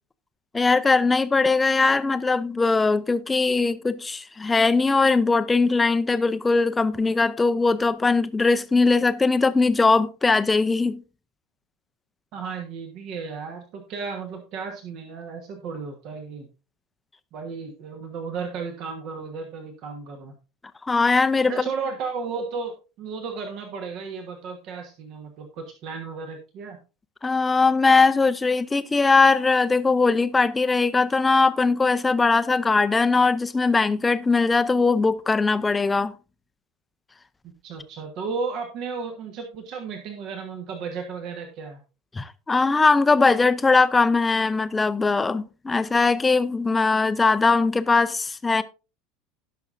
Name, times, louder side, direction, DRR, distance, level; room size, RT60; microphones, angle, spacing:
voice 1, 0.5-11.0 20.8-21.6 27.2-36.1 42.1-48.6, left 3 dB, 15° left, 0.6 m, -20 dB
voice 2, 12.3-16.5 17.3-20.3 21.4-26.8 37.4-41.8, right 5 dB, 45° right, 1.3 m, -34 dB
17.5 x 6.1 x 2.6 m
figure-of-eight pair, 75°, 0 cm